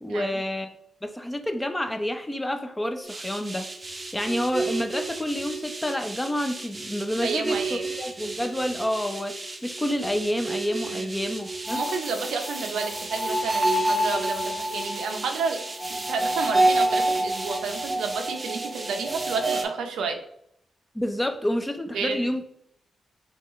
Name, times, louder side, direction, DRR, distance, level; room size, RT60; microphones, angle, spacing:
voice 1, 0.0-0.7 1.0-3.7 4.1-9.3 9.6-11.8 20.9-22.4, left 1 dB, 10° left, 6 dB, 0.5 m, -28 dB
sound 1, 3.1-19.6, right 1 dB, 30° right, 0.6 m, -29 dB
voice 2, 7.2-7.8 10.9-11.1 11.7-15.6 15.9-20.2 21.9-22.2, right 5 dB, 90° right, 5 dB, 0.5 m, -31 dB
4.5 x 2.4 x 3.0 m, 0.71 s
cardioid pair, 70°, 0 cm